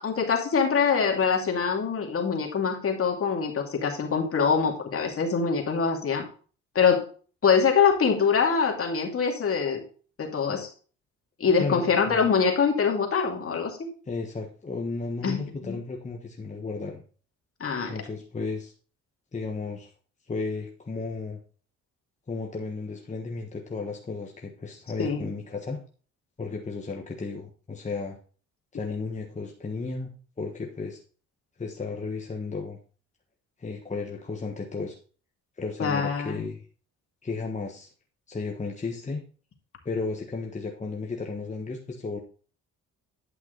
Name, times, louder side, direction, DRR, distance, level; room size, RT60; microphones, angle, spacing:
voice 1, 0.0-6.3 6.7-7.0 7.4-9.8 10.2-10.7 11.4-13.9 15.2-15.8 17.6-17.9 25.0-25.2 35.8-36.5, left 6 dB, 50° left, 2 dB, 2.5 m, -24 dB
voice 2, 11.6-12.2 14.1-17.0 17.9-18.7 19.3-19.9 20.3-21.4 22.3-25.8 26.4-28.2 28.7-31.0 31.6-32.8 33.6-35.0 35.6-36.7 37.2-37.9 38.3-39.2 39.8-42.2, left 4 dB, 25° left, 1 dB, 1.3 m, -34 dB
10.5 x 5.9 x 3.9 m, 0.40 s
cardioid pair, 90°, 30 cm